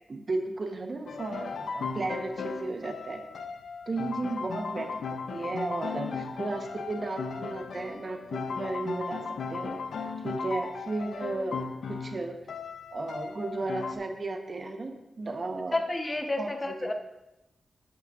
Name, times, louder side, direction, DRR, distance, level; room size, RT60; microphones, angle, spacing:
voice 1, 0.1-3.2 3.9-5.0 5.3-9.2 9.5-9.8 10.2-12.4 12.9-15.8 16.4-16.9, right 2 dB, 50° right, 5 dB, 1.0 m, -34 dB
sound 1, 1.1-14.0, left 5 dB, 80° left, 0.6 m, -36 dB
voice 2, 15.7-16.9, left 2 dB, 30° left, 4 dB, 1.0 m, -30 dB
11.5 x 6.7 x 2.5 m, 0.93 s
cardioid pair, 55°, 0 cm